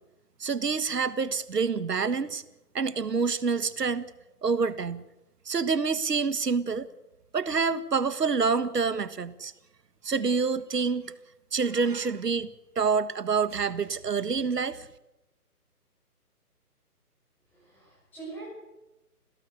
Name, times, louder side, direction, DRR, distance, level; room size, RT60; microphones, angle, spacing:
voice 1, 0.4-2.4 2.7-4.1 4.4-5.0 5.4-6.9 7.3-9.5 10.0-11.1 11.5-12.5 12.7-14.9, right 5 dB, 85° right, 13 dB, 1.7 m, -27 dB
voice 2, 17.5-18.5, right 4 dB, 5° left, -6 dB, 6.3 m, -43 dB
28.0 x 17.0 x 8.1 m, 1.0 s
hypercardioid pair, 175°, 46 cm